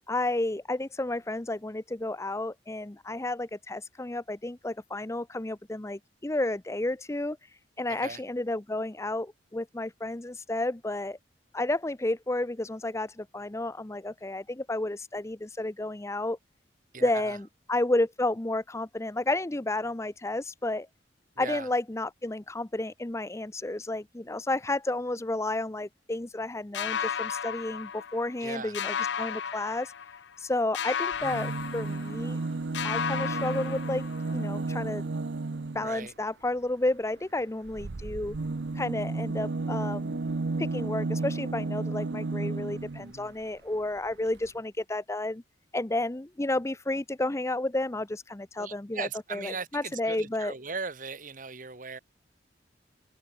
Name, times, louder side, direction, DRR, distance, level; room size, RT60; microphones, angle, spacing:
voice 1, 0.1-7.4 7.8-11.2 11.5-16.4 17.0-20.9 21.4-29.9 30.4-32.4 32.8-35.0 35.7-38.4 38.7-40.2 40.6-45.4 45.7-50.5, left 2 dB, 15° left, 0.6 m, -31 dB
voice 2, 7.9-8.2 16.9-17.4 21.4-21.7 28.4-28.8 35.8-36.1 43.0-43.4 48.6-52.0, right 5 dB, 50° right, 2.0 m, -38 dB
sound 1, 26.7-28.5 28.7-30.4 30.7-32.5 32.7-34.4, left 7 dB, 80° left, 0.6 m, -34 dB
sound 2, 31.1-36.0 37.6-43.1 44.1-44.2 44.4-44.5, right 3 dB, 75° right, 0.7 m, -33 dB
head